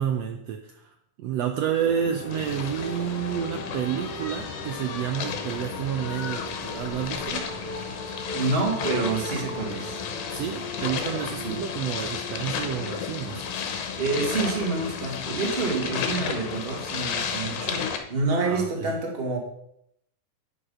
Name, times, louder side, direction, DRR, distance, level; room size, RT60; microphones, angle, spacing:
voice 1, 0.0-7.4 10.3-13.4 18.4-18.9, right 9 dB, 80° right, 4 dB, 1.5 m, -30 dB
sound 1, 1.6-14.4, left 1 dB, 10° left, 1.0 m, -41 dB
sound 2, 1.8-7.8, left 4 dB, 40° left, 1.5 m, -44 dB
sound 3, 2.3-18.0, left 6 dB, 70° left, 2.5 m, -33 dB
voice 2, 8.3-10.0 11.4-11.6 13.3-13.4 14.0-19.4, right 3 dB, 25° right, 0 dB, 1.4 m, -28 dB
9.3 x 7.1 x 5.6 m, 0.76 s
omnidirectional pair, 3.9 m